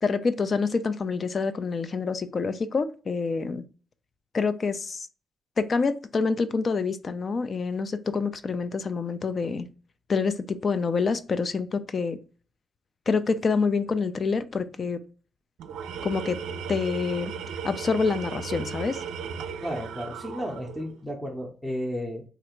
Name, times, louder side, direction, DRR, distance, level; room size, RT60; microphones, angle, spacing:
voice 1, 0.0-3.6 4.3-5.1 5.6-9.7 10.1-12.2 13.1-15.0 16.0-16.4 16.7-17.3 17.6-19.0, left 4 dB, 40° left, 12 dB, 0.3 m, -27 dB
Tools, 15.6-21.0, right 6 dB, 85° right, 0.4 m, -36 dB
voice 2, 19.6-22.2, equal, 5° left, 0 dB, 0.7 m, -33 dB
3.2 x 2.4 x 3.0 m, 0.37 s
cardioid pair, 90°, 0 cm